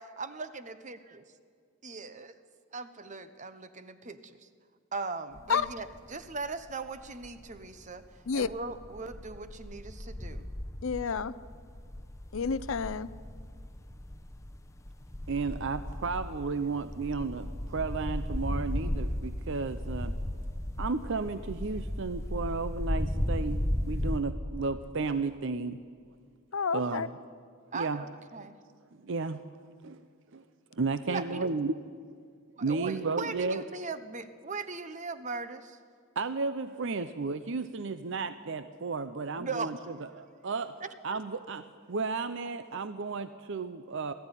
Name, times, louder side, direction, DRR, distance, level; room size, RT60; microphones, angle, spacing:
voice 1, 0.0-1.2 1.8-2.4 2.7-4.5 4.9-8.0 8.3-10.5 27.7-28.6 31.1-31.5 32.5-35.8 39.4-39.7 40.8-40.9, right 4 dB, 35° right, 12 dB, 0.9 m, -39 dB
sound 1, 5.4-6.0 6.4-7.7 8.2-24.2, left 1 dB, 15° left, 1.0 m, -35 dB
voice 2, 10.8-11.4 12.3-13.1 26.5-27.1, left 5 dB, 65° left, 16 dB, 0.5 m, -29 dB
voice 3, 15.3-20.2 20.8-25.8 26.7-27.0 27.7-28.0 29.0-29.4 29.8-30.0 30.3-30.4 30.7-31.7 32.6-33.6 36.2-39.8 40.1-40.7 41.0-44.1, right 4 dB, 55° right, 12 dB, 0.6 m, -33 dB
19.5 x 13.5 x 9.8 m, 2.1 s
head